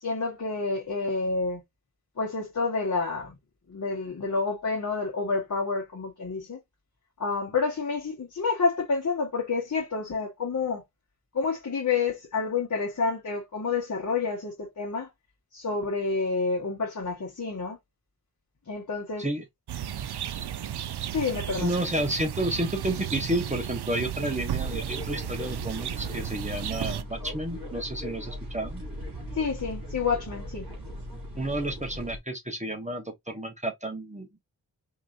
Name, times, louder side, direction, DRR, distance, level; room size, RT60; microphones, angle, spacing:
voice 1, 0.0-1.6 2.2-3.4 3.7-6.6 7.2-10.8 11.3-15.1 15.5-17.8 18.7-19.3 21.1-21.7 29.4-30.7, left 4 dB, 50° left, 1.3 m, -29 dB
sound 1, 19.7-27.0, right 10 dB, 90° right, 0.5 m, -34 dB
voice 2, 21.5-28.8 31.1-34.3, right 1 dB, 20° right, 1.1 m, -31 dB
sound 2, 24.6-32.2, equal, 60° right, 2.9 m, -39 dB
4.7 x 3.6 x 2.6 m
wide cardioid pair, 100°, 38 cm